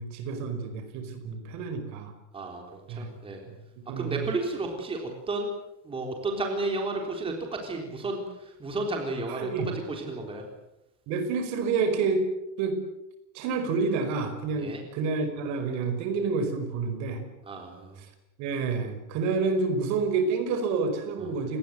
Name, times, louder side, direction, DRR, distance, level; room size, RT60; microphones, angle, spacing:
voice 1, 0.0-2.1 2.9-3.1 3.9-4.3 9.3-9.7 11.1-12.3 12.6-12.8 13.3-17.2 18.4-21.6, right 4 dB, 45° right, 9 dB, 5.1 m, -28 dB
voice 2, 2.3-3.4 4.0-5.5 5.8-9.5 9.9-10.4 14.6-14.8 17.5-17.9 21.2-21.3, right 2 dB, 15° right, 2 dB, 3.8 m, -32 dB
28.5 x 20.5 x 7.9 m, 0.88 s
cardioid pair, 175°, 40 cm